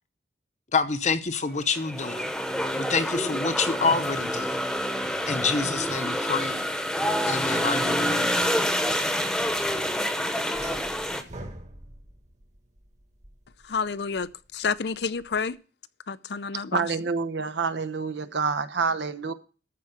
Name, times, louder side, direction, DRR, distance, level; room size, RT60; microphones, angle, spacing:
voice 1, 0.7-2.4 2.8-4.6 5.3-6.6 7.2-8.3, left 4 dB, 40° left, 0.9 m, -27 dB
sound 1, 1.7-11.2, equal, 5° left, 1.0 m, -27 dB
sound 2, 10.5-15.5, right 1 dB, 40° right, 1.6 m, -44 dB
voice 2, 13.7-14.3 14.5-15.5 16.1-16.8, left 5 dB, 70° left, 0.5 m, -29 dB
voice 3, 16.7-19.3, right 4 dB, 80° right, 0.9 m, -27 dB
13.5 x 4.8 x 7.3 m
head